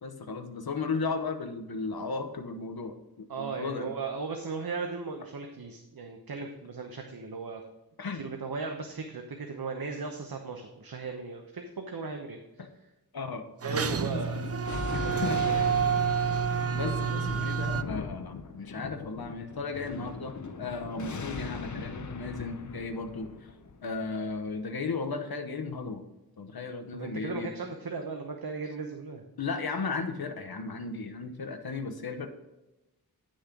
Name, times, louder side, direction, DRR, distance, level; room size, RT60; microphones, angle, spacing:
voice 1, 0.0-3.9 8.0-8.2 12.6-12.7 13.1-13.5 14.9-15.6 16.7-23.3 23.8-26.0 26.4-27.5 29.4-32.3, left 4 dB, 70° left, 7 dB, 1.0 m, -35 dB
voice 2, 3.3-7.6 8.1-12.4 13.6-14.5 14.9-15.7 26.9-29.2, right 4 dB, 65° right, 3 dB, 0.9 m, -37 dB
sound 1, 13.6-17.8, right 6 dB, 40° right, 0.5 m, -28 dB
Thunder, 13.7-24.6, left 4 dB, 50° left, 0.7 m, -39 dB
9.9 x 6.3 x 3.8 m, 1.0 s
wide cardioid pair, 85°, 38 cm